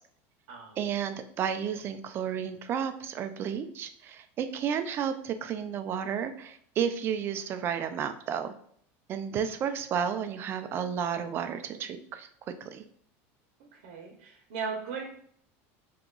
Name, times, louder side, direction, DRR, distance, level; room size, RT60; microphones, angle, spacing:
voice 1, 0.8-8.5 9.1-12.3 12.6-12.8, right 8 dB, 35° right, 9 dB, 0.3 m, -32 dB
voice 2, 13.6-15.1, right 5 dB, 70° right, 0 dB, 0.7 m, -37 dB
2.8 x 2.3 x 3.7 m, 0.62 s
supercardioid pair, 145°, 7 cm